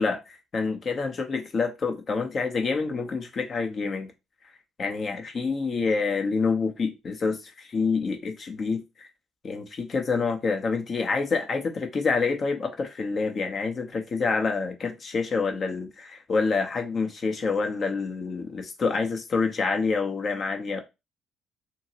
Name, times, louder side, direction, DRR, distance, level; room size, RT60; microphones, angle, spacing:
voice 1, 0.0-4.1 4.8-9.1 9.4-20.8, left 4 dB, 45° left, 0.8 m, -27 dB
2.8 x 2.8 x 2.8 m
hypercardioid pair, 50°, 0 cm